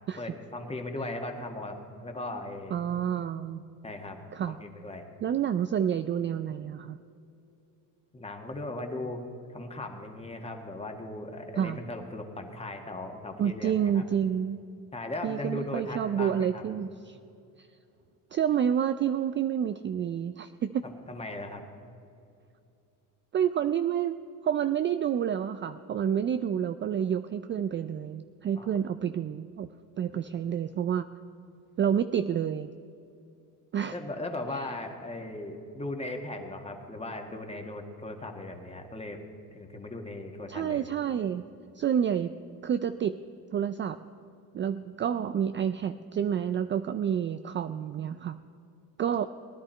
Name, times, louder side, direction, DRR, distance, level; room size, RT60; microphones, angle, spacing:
voice 1, 0.2-2.8 3.8-4.2 4.5-5.1 8.1-9.2 9.5-14.0 14.9-16.6 21.1-21.6 28.6-28.7 33.9-39.2 39.5-40.8, left 2 dB, 15° left, 4 dB, 1.5 m, -38 dB
voice 2, 2.7-3.6 4.3-4.6 5.2-7.0 11.6-11.8 13.4-14.6 15.2-17.2 18.3-20.8 23.3-29.7 30.0-31.1 31.8-32.7 33.7-33.9 40.5-41.4 41.8-42.3 42.6-43.2 43.5-44.0 44.5-48.4 49.0-49.3, right 9 dB, 35° right, 11 dB, 0.4 m, -29 dB
19.0 x 11.0 x 4.4 m, 2.6 s
cardioid pair, 100°, 37 cm